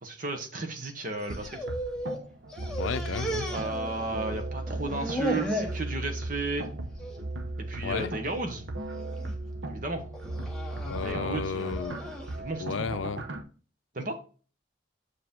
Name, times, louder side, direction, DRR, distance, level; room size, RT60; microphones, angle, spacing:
voice 1, 0.0-1.6 3.5-6.7 7.6-8.6 9.7-10.0 11.0-11.9 12.1-12.6 13.9-14.2, right 2 dB, 45° right, 1.2 m, -34 dB
sound 1, 1.1-2.2 2.5-4.4 4.7-5.8 6.3-6.7 7.0-7.2 8.0-8.4 8.9-9.3 10.1-12.3, equal, 5° left, 1.0 m, -35 dB
sound 2, 1.3-13.4, right 2 dB, 65° right, 0.8 m, -37 dB
voice 2, 2.8-3.5 7.8-8.1 10.8-12.0 12.6-13.3, left 5 dB, 90° left, 0.5 m, -33 dB
6.7 x 4.8 x 3.7 m
head